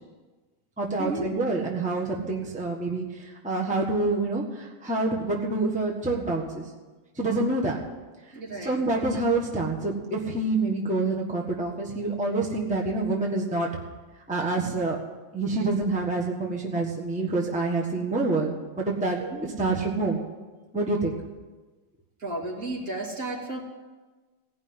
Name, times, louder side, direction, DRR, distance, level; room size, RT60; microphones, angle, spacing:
voice 1, 0.8-6.7 7.2-7.8 8.6-13.7 14.3-15.0 15.3-20.2 20.7-21.1, right 2 dB, 5° right, -2 dB, 1.4 m, -27 dB
voice 2, 8.3-8.8 19.2-19.5 22.2-23.6, right 2 dB, 50° right, -3 dB, 3.1 m, -33 dB
17.5 x 5.8 x 9.7 m, 1.3 s
omnidirectional pair, 1.9 m